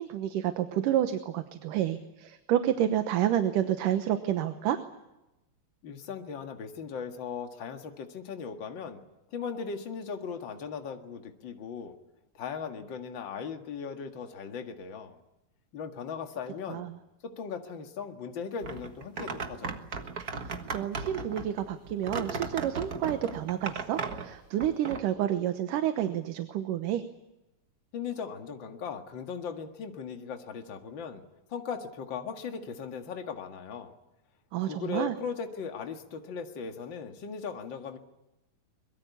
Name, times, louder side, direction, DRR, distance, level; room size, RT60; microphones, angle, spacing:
voice 1, 0.0-4.8 16.7-17.0 20.4-27.0 34.5-35.1, right 11 dB, 75° right, 8 dB, 2.6 m, -29 dB
voice 2, 5.8-9.0 9.3-12.0 12.3-15.2 15.7-16.8 17.2-19.8 27.9-31.2 31.5-33.9 34.7-38.0, left 6 dB, 40° left, 5 dB, 2.1 m, -38 dB
sound 1, 18.6-25.0, right 4 dB, 50° right, 1.1 m, -36 dB
23.5 x 22.0 x 8.4 m, 0.95 s
omnidirectional pair, 4.0 m